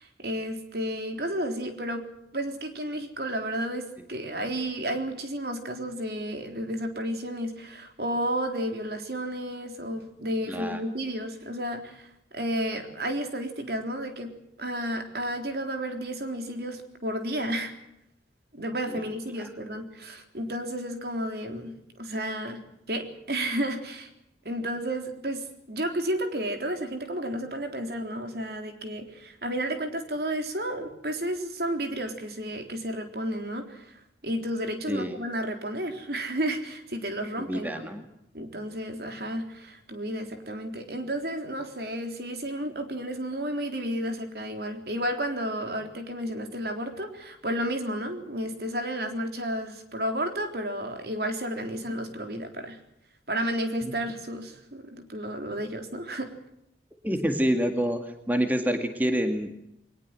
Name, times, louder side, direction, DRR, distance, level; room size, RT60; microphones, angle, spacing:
voice 1, 0.0-2.1 2.3-14.3 14.6-17.7 18.5-24.1 24.5-37.9 38.3-52.8 53.3-56.3, right 1 dB, 60° right, 5 dB, 3.7 m, -32 dB
voice 2, 10.5-10.8 34.9-35.1 37.4-38.0 53.8-53.9 57.0-58.0 58.3-59.5, equal, 10° right, 5 dB, 2.0 m, -27 dB
22.5 x 20.5 x 7.7 m, 0.81 s
head